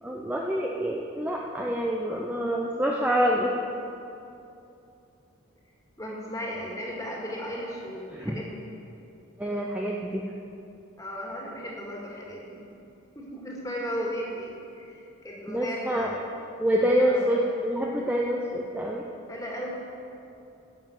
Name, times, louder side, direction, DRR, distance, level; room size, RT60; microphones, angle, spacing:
voice 1, 0.0-3.5 8.1-8.4 9.4-10.2 15.5-16.1 16.6-19.0, equal, 5° right, -2 dB, 0.6 m, -26 dB
voice 2, 6.0-8.6 11.0-12.6 13.1-16.3 17.1-17.2 19.3-19.7, equal, 15° left, -3 dB, 2.0 m, -35 dB
10.0 x 7.3 x 8.0 m, 2.7 s
head